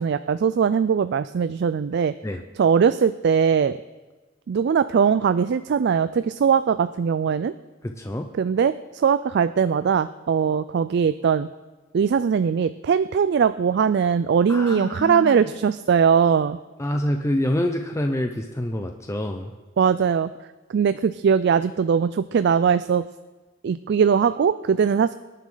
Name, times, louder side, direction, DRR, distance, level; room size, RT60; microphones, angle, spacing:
voice 1, 0.0-2.1 2.6-3.8 4.5-7.5 8.4-11.5 11.9-16.6 19.8-20.3 20.7-23.0 23.6-25.1, right 6 dB, 60° right, 13 dB, 0.3 m, -20 dB
voice 2, 7.8-8.3 14.5-15.4 16.8-19.5, left 1 dB, 15° left, 4 dB, 0.7 m, -26 dB
24.5 x 11.0 x 3.9 m, 1.2 s
head